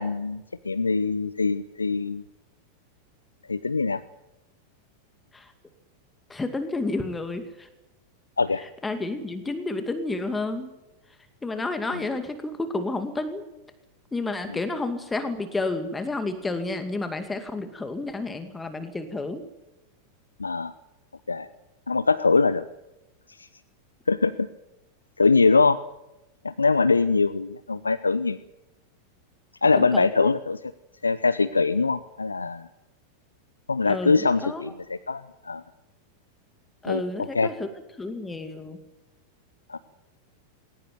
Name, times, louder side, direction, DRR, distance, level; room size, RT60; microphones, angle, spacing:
voice 1, 0.0-2.2 3.5-4.0 8.4-8.6 11.9-12.0 14.5-14.6 20.4-20.7 21.3-21.5 21.9-22.6 23.4-23.5 24.1-24.5 25.2-25.8 26.4-28.4 29.6-30.6 31.0-32.7 33.7-35.6 36.9-37.5 39.7-39.8, left 4 dB, 80° left, 15 dB, 0.7 m, -23 dB
voice 2, 6.3-7.7 8.8-10.7 11.4-13.4 14.1-19.4 29.8-30.3 33.8-34.6 36.8-37.7 38.0-38.8, left 2 dB, 10° left, 8 dB, 2.3 m, -30 dB
20.5 x 18.5 x 9.5 m, 0.96 s
figure-of-eight pair, 90°, 0 cm